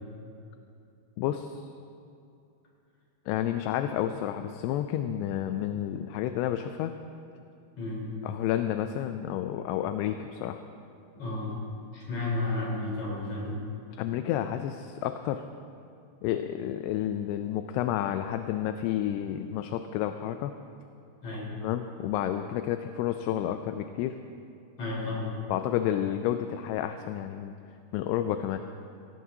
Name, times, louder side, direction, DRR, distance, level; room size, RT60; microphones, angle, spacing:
voice 1, 1.2-1.6 3.3-6.9 8.2-10.6 14.0-15.4 16.2-20.5 21.6-24.2 25.5-27.6 27.9-28.6, left 11 dB, 85° left, 8 dB, 2.5 m, -30 dB
voice 2, 7.8-8.1 11.1-11.6 11.9-13.6 21.2-21.5 24.8-25.3, left 2 dB, 40° left, -5 dB, 4.9 m, -32 dB
20.5 x 17.0 x 2.8 m, 2.6 s
omnidirectional pair, 5.0 m